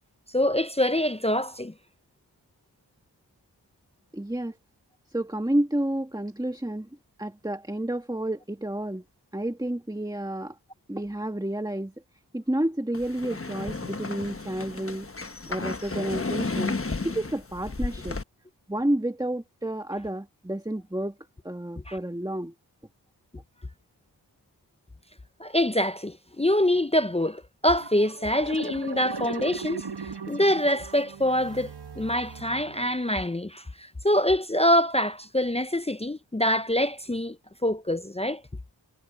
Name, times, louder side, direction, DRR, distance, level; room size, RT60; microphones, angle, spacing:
voice 1, 0.3-1.7 21.9-22.0 25.4-37.4 37.6-38.4, left 1 dB, 15° left, 0.6 m, -25 dB
voice 2, 4.1-4.6 5.1-6.9 7.2-9.0 9.3-10.6 10.9-11.9 12.3-15.1 15.5-16.8 17.0-18.2 18.7-21.1 21.4-22.5, right 1 dB, 10° right, 1.9 m, -30 dB
sound 1, 12.9-18.2, left 3 dB, 30° left, 1.1 m, -33 dB
sound 2, 27.7-33.1, right 4 dB, 65° right, 1.3 m, -39 dB
wide cardioid pair, 45°, 43 cm